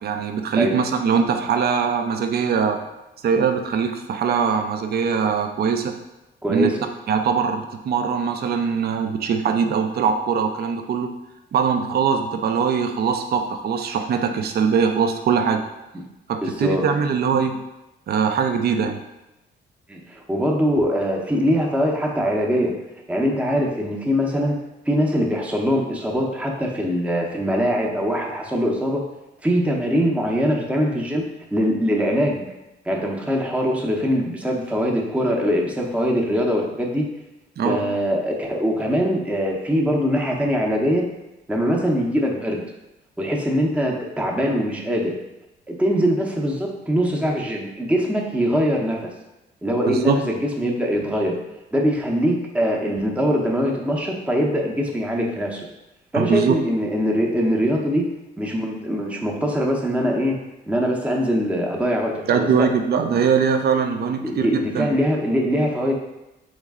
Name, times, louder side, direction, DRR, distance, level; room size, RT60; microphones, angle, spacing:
voice 1, 0.0-2.8 3.2-5.9 6.5-6.7 7.1-11.1 11.5-15.6 16.3-17.6 18.1-19.0 37.6-37.8 49.9-50.2 56.1-56.6 62.3-64.9, right 6 dB, 55° right, 6 dB, 0.5 m, -21 dB
voice 2, 6.4-6.8 16.4-16.8 19.9-22.8 23.1-24.6 24.9-29.0 29.4-31.2 31.5-32.4 32.9-37.1 37.6-41.1 41.5-42.7 43.2-45.1 45.7-49.1 49.6-51.4 51.7-55.6 56.1-58.1 58.4-60.4 60.7-62.7 64.2-65.9, equal, 5° right, -1 dB, 0.7 m, -22 dB
3.6 x 3.2 x 3.5 m, 0.95 s
cardioid pair, 90°, 20 cm